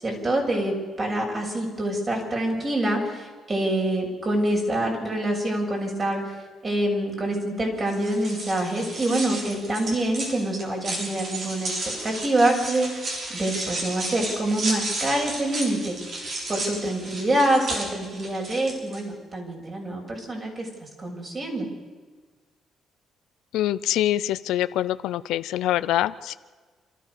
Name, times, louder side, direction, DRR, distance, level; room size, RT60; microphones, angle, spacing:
voice 1, 0.0-6.4 6.6-11.7 12.0-21.7, right 1 dB, 35° right, 0 dB, 7.3 m, -26 dB
sound 1, 7.9-19.0, right 2 dB, 55° right, 6.6 m, -33 dB
voice 2, 23.5-26.4, left 13 dB, 90° left, 15 dB, 0.6 m, -25 dB
28.0 x 14.0 x 6.9 m, 1.4 s
cardioid pair, 90°, 0 cm